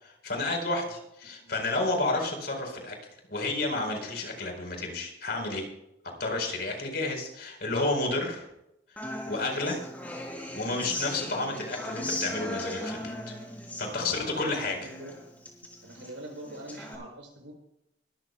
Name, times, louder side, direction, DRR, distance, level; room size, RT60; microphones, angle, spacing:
voice 1, 0.0-3.0 3.3-5.7 6.2-8.5 9.3-9.8 10.6-13.3 13.8-14.8, left 2 dB, 55° left, 2 dB, 4.4 m, -31 dB
Human voice / Acoustic guitar, 9.0-16.9, left 1 dB, 10° left, 3.5 m, -38 dB
voice 2, 14.0-15.1 15.8-17.5, right 1 dB, 80° right, 0 dB, 6.7 m, -44 dB
22.5 x 13.5 x 2.3 m, 0.81 s
head